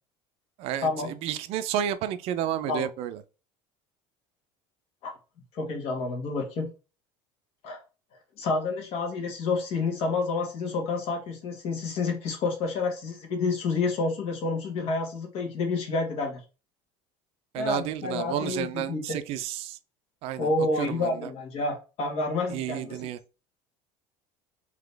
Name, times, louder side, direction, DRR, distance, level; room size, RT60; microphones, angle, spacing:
voice 1, 0.6-3.2 17.5-19.8 20.2-20.5 20.8-21.3 22.5-23.2, right 10 dB, 60° right, 0.5 m, -31 dB
voice 2, 5.5-6.7 7.6-7.8 8.4-16.4 17.5-19.2 20.4-23.0, left 3 dB, 60° left, 1.5 m, -29 dB
3.8 x 2.9 x 3.3 m
cardioid pair, 125°, 12 cm